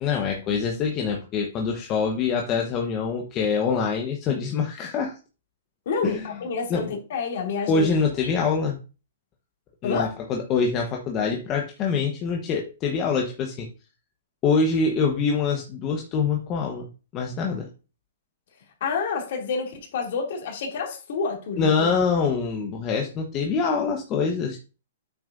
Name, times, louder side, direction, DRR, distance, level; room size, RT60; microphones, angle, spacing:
voice 1, 0.0-5.1 6.0-6.2 6.7-6.9 7.7-8.8 9.8-13.7 14.4-16.9 17.1-17.7 21.6-24.6, left 5 dB, 30° left, 1.1 m, -25 dB
voice 2, 5.9-7.9 8.3-8.5 9.8-10.1 18.8-21.9, left 5 dB, 60° left, 2.7 m, -28 dB
8.5 x 6.4 x 2.6 m
hypercardioid pair, 145°, 0 cm